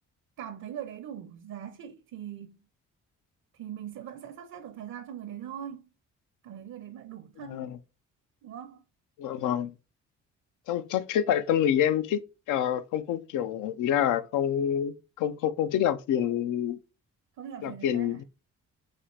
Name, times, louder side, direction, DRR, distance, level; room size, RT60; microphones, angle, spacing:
voice 1, 0.4-2.6 3.5-5.9 6.4-7.7 8.4-8.8 17.4-18.2, right 9 dB, 70° right, 0.7 m, -41 dB
voice 2, 7.4-7.8 9.2-9.7 10.7-12.2 12.5-16.8 17.6-18.2, left 10 dB, 85° left, 0.5 m, -27 dB
4.2 x 2.5 x 3.1 m
cardioid pair, 90°, 30 cm